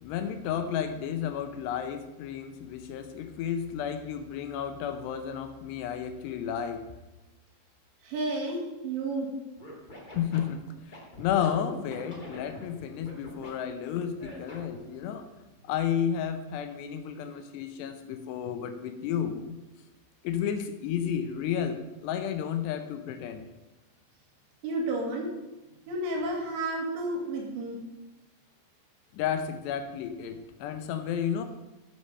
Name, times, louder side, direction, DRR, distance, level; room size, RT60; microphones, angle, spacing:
voice 1, 0.0-6.8 10.2-15.3 15.6-19.6 20.2-23.5 29.1-31.4, left 8 dB, 80° left, 8 dB, 2.9 m, -32 dB
voice 2, 8.0-9.3 24.6-25.3 25.9-27.8, right 2 dB, 80° right, -1 dB, 4.4 m, -31 dB
Scratching (performance technique), 9.6-11.5 11.9-13.5 14.2-14.8, left 1 dB, 40° left, 0.6 m, -45 dB
12.5 x 7.0 x 5.5 m, 1.0 s
omnidirectional pair, 5.1 m